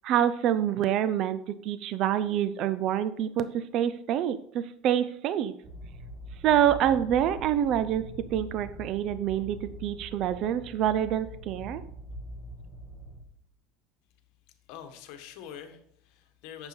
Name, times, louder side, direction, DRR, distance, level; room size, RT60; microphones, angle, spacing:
voice 1, 0.0-5.6 6.4-8.1 8.3-11.8, right 10 dB, 45° right, 13 dB, 0.5 m, -26 dB
sound 1, 5.6-13.2, right 1 dB, 15° right, 1.7 m, -43 dB
voice 2, 14.7-16.7, left 9 dB, 60° left, 7 dB, 1.4 m, -45 dB
9.1 x 7.0 x 4.4 m, 0.70 s
cardioid pair, 150°, 0 cm